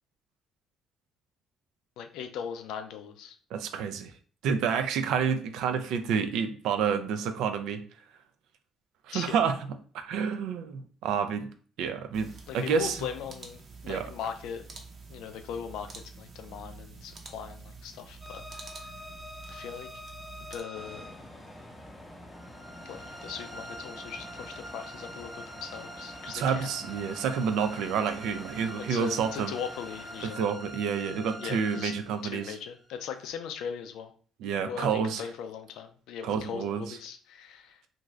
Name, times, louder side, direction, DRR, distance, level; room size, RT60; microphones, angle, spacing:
voice 1, 2.0-3.4 9.1-9.4 12.5-14.6 15.1-15.9 16.2-18.7 19.5-19.9 20.5-21.1 22.9-26.7 28.8-30.4 31.4-31.9 32.2-34.1 34.7-37.8, left 8 dB, 75° left, 7 dB, 0.4 m, -39 dB
voice 2, 3.5-4.1 4.4-7.8 9.1-9.7 9.9-11.5 11.8-13.0 13.9-14.1 26.3-29.5 30.2-32.6 34.4-35.2 36.2-37.0, right 6 dB, 75° right, 8 dB, 0.3 m, -29 dB
sound 1, 12.1-20.6, right 4 dB, 50° right, 0.7 m, -47 dB
sound 2, 18.2-33.3, equal, 15° right, 0.9 m, -45 dB
sound 3, 20.7-30.4, left 1 dB, 15° left, 0.6 m, -48 dB
2.5 x 2.3 x 3.1 m, 0.43 s
supercardioid pair, 70°, 0 cm